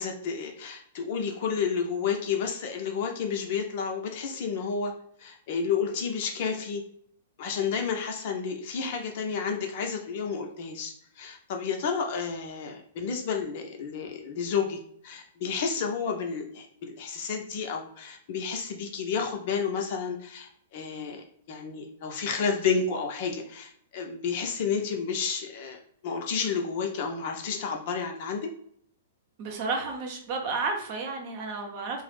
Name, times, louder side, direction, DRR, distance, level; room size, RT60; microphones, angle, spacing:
voice 1, 0.0-4.9 5.2-6.8 7.4-14.8 15.0-28.5, left 6 dB, 50° left, 3 dB, 0.6 m, -31 dB
voice 2, 29.4-32.0, right 4 dB, 45° right, 2 dB, 0.7 m, -32 dB
3.1 x 2.0 x 3.2 m, 0.65 s
figure-of-eight pair, 110°, 0 cm